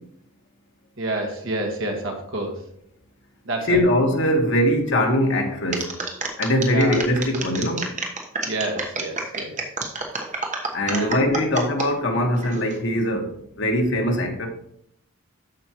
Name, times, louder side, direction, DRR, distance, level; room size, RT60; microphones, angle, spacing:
voice 1, 1.0-2.7 3.4-3.8 6.7-7.0 8.4-9.6 10.9-11.2, right 2 dB, 60° right, 2 dB, 1.7 m, -29 dB
voice 2, 3.7-5.9 6.4-7.8 10.7-13.3 13.6-14.5, equal, 55° left, 2 dB, 1.5 m, -21 dB
sound 1, 5.7-11.9 12.4-12.8, right 3 dB, 35° right, 1.1 m, -29 dB
13.0 x 5.3 x 3.0 m, 0.71 s
head